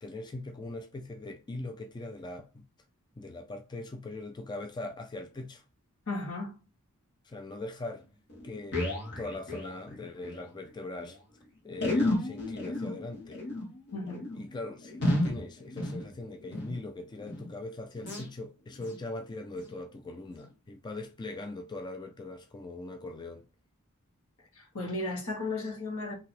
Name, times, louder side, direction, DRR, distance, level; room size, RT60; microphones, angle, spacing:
voice 1, 0.0-2.6 3.2-5.6 7.2-8.0 8.4-8.8 9.2-11.2 11.6-13.4 14.3-23.4, left 2 dB, 20° left, 0.3 m, -41 dB
voice 2, 6.1-6.6 13.9-14.2 24.5-26.1, left 2 dB, 65° left, 1.5 m, -35 dB
sound 1, 7.9-8.0 8.3-10.4 10.7-10.8 11.0-11.1 11.7-16.8 17.2-17.5 18.0-18.3 18.8-19.0 19.5-19.7 20.3-20.4, left 1 dB, 50° left, 1.7 m, -33 dB
3.8 x 2.8 x 4.2 m
head